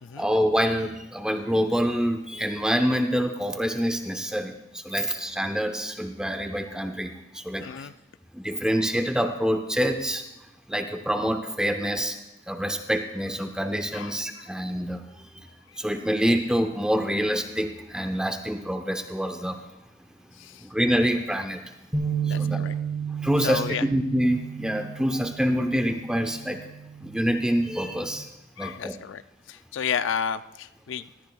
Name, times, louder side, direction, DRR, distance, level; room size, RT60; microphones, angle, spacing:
voice 1, 0.2-7.9 8.3-10.2 10.7-12.2 12.5-15.5 15.8-19.6 20.6-21.6 22.2-22.7 23.2-26.6 27.0-28.3 28.6-28.9, equal, 5° right, 6 dB, 0.7 m, -26 dB
voice 2, 7.6-7.9 13.9-14.5 15.7-15.8 20.3-20.7 22.2-22.8 23.4-23.9 28.6-29.2 29.5-31.3, left 7 dB, 75° left, 13 dB, 0.4 m, -32 dB
sound 1, 21.9-28.2, right 6 dB, 20° right, 2.5 m, -33 dB
18.5 x 13.5 x 2.3 m, 0.96 s
head